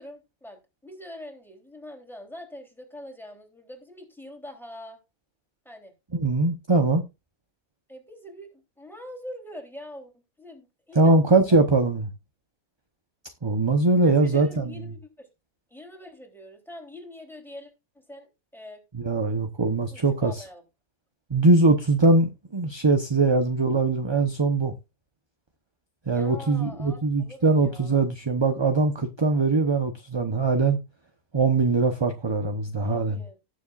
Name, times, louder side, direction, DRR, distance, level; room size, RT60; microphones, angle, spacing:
voice 1, 0.0-5.0 5.6-5.9 7.9-10.1 10.4-11.7 14.0-15.3 15.7-18.8 19.9-20.6 26.1-28.0 32.8-33.4, left 1 dB, ahead, 3.3 m, -44 dB
voice 2, 6.1-7.0 10.9-12.1 13.4-14.9 18.9-20.4 21.3-24.7 26.1-30.8 31.3-33.2, right 3 dB, 25° right, 0.8 m, -22 dB
19.0 x 7.2 x 2.5 m
omnidirectional pair, 1.5 m